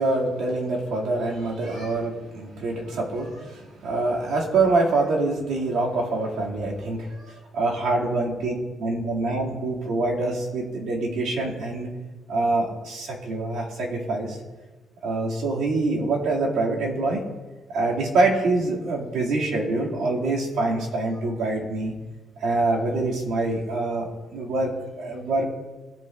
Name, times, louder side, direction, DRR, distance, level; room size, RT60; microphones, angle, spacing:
voice 1, 0.0-8.5 8.8-11.9 12.3-14.4 15.0-17.2 17.7-21.9 22.4-25.4, right 2 dB, 80° right, -3 dB, 1.8 m, -25 dB
15.5 x 5.3 x 2.2 m, 1.2 s
cardioid pair, 140°, 0 cm